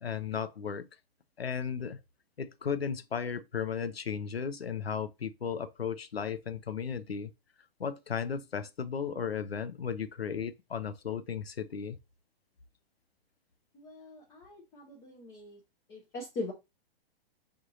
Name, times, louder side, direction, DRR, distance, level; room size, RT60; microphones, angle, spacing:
voice 1, 0.0-0.9 1.4-2.0 2.4-7.3 7.8-12.0, left 7 dB, 90° left, 0.5 m, -35 dB
voice 2, 13.7-15.6 15.9-16.5, left 2 dB, 10° left, 0.3 m, -41 dB
5.0 x 2.7 x 2.6 m
figure-of-eight pair, 115°, 30 cm